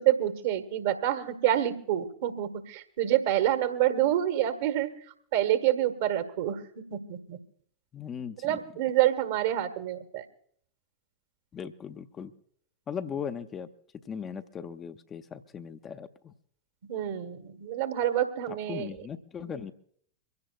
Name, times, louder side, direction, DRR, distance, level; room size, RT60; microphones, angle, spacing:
voice 1, 0.0-4.9 5.3-6.6 6.9-7.4 8.4-10.2 16.9-18.9, right 12 dB, 55° right, 9 dB, 1.4 m, -27 dB
voice 2, 7.9-8.6 11.5-12.3 12.9-13.7 14.0-16.3 18.5-19.7, left 7 dB, 25° left, 8 dB, 0.7 m, -38 dB
24.0 x 16.5 x 2.3 m, 0.64 s
figure-of-eight pair, 90°, 0 cm